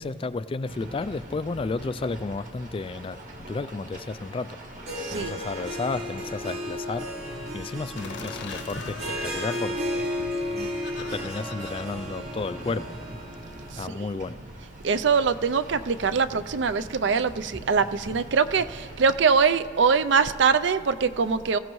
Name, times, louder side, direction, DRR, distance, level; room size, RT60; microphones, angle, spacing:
voice 1, 0.0-4.6 5.1-7.1 7.5-10.1 10.5-10.7 11.1-12.9 13.7-14.4, left 3 dB, 25° left, 14 dB, 0.3 m, -32 dB
sound 1, 0.7-19.2, right 1 dB, 40° right, 1.8 m, -44 dB
Harp, 4.7-13.7, equal, 80° right, 4.4 m, -34 dB
voice 2, 5.0-5.3 13.7-13.9 14.8-21.6, right 5 dB, 60° right, 12 dB, 0.5 m, -23 dB
Laughter, 8.0-13.1, left 4 dB, 60° left, 0.8 m, -42 dB
28.0 x 15.5 x 3.1 m, 2.6 s
head